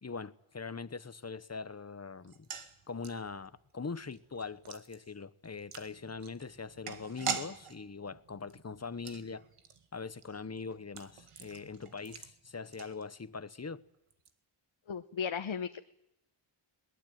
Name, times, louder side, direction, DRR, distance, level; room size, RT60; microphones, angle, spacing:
voice 1, 0.0-2.5 2.9-9.4 9.9-13.8, left 4 dB, 30° left, 1.0 m, -42 dB
sound 1, 2.2-13.5 13.7-13.8 14.1-14.3, right 6 dB, 85° right, 2.0 m, -44 dB
voice 2, 14.9-15.8, left 7 dB, 65° left, 1.1 m, -35 dB
22.0 x 19.5 x 9.3 m
wide cardioid pair, 75°, 50 cm